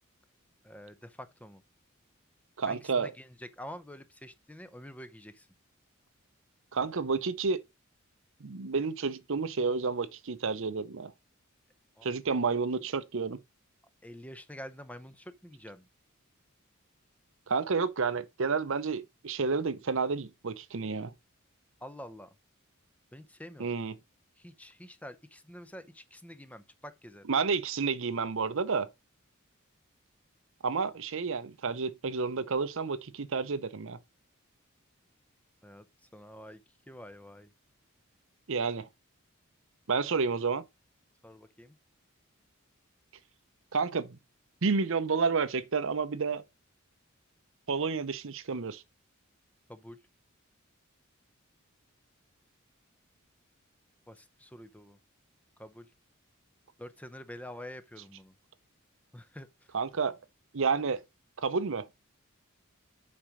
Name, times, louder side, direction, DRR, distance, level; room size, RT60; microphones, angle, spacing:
voice 1, 0.6-1.6 2.7-5.5 12.0-12.1 12.4-12.6 14.0-15.9 21.8-22.3 23.1-23.7 24.4-27.2 35.6-35.8 36.1-36.6 36.9-37.5 41.2-41.8 49.7-50.0 54.1-55.0 55.6-55.9 56.8-58.3 59.1-59.7, equal, 5° left, 0.7 m, -47 dB
voice 2, 2.6-3.1 6.7-7.6 8.4-11.1 12.0-13.4 17.5-21.1 23.6-23.9 27.3-28.9 30.6-34.0 38.5-38.9 39.9-40.6 43.7-44.2 44.6-46.4 47.7-48.8 59.7-60.2 60.5-61.0 61.4-61.9, right 4 dB, 65° right, 0.7 m, -30 dB
7.4 x 5.2 x 4.9 m
head